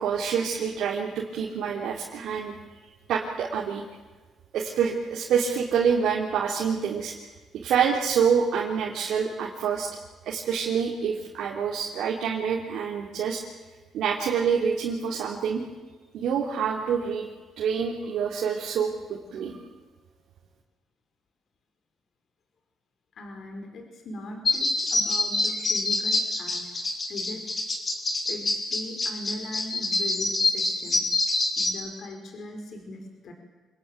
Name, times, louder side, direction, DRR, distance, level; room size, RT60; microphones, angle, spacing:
voice 1, 0.0-2.5 3.1-3.8 4.5-7.1 7.5-9.9 10.3-13.4 13.9-15.6 16.1-17.3 17.6-19.6, right 7 dB, 75° right, -2 dB, 3.6 m, -26 dB
voice 2, 23.1-26.7 27.1-27.5 28.3-31.1 31.6-33.3, left 2 dB, 60° left, 4 dB, 5.5 m, -40 dB
sound 1, 24.4-31.7, left 2 dB, 30° left, 4.9 m, -26 dB
27.0 x 20.5 x 9.3 m, 1.3 s
cardioid pair, 90°, 0 cm